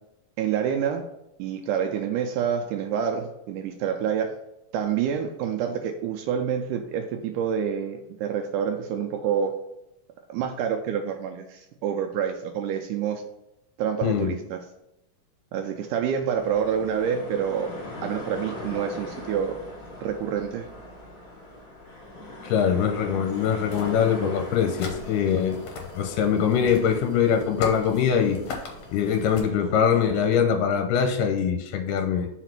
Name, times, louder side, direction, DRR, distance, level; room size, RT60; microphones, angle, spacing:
voice 1, 0.4-1.1 1.4-4.3 4.7-9.5 10.3-13.2 13.8-14.6 15.5-17.7 18.0-19.6 20.0-20.7, right 8 dB, 80° right, 4 dB, 1.9 m, -27 dB
sound 1, 16.3-30.4, left 1 dB, 45° left, 1.2 m, -41 dB
voice 2, 22.4-25.6 26.0-28.4 28.9-32.3, left 7 dB, 80° left, 5 dB, 2.1 m, -23 dB
sound 2, 23.3-29.4, left 4 dB, 65° left, 1.9 m, -39 dB
4.9 x 4.0 x 5.9 m, 0.88 s
omnidirectional pair, 3.9 m